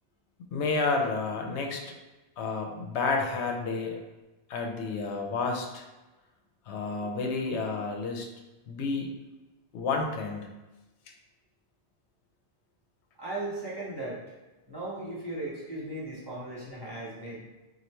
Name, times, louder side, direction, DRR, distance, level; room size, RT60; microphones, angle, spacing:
voice 1, 0.5-1.8 2.4-4.0 4.5-5.8 6.7-8.3 8.7-9.1 9.7-10.5, left 4 dB, 80° left, 2 dB, 0.9 m, -30 dB
voice 2, 13.2-14.2 14.7-17.4, right 2 dB, 20° right, -7 dB, 1.0 m, -37 dB
3.1 x 2.4 x 4.3 m, 1.1 s
omnidirectional pair, 1.2 m